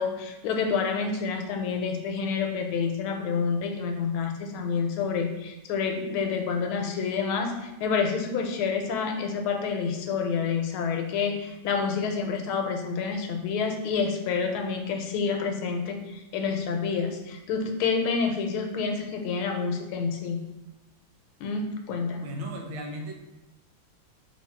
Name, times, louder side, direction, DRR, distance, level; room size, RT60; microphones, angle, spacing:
voice 1, 0.0-20.4 21.4-22.3, left 5 dB, 90° left, 4 dB, 1.5 m, -28 dB
voice 2, 22.2-23.1, equal, 80° right, 1 dB, 1.5 m, -35 dB
3.5 x 2.6 x 4.3 m, 0.98 s
omnidirectional pair, 2.3 m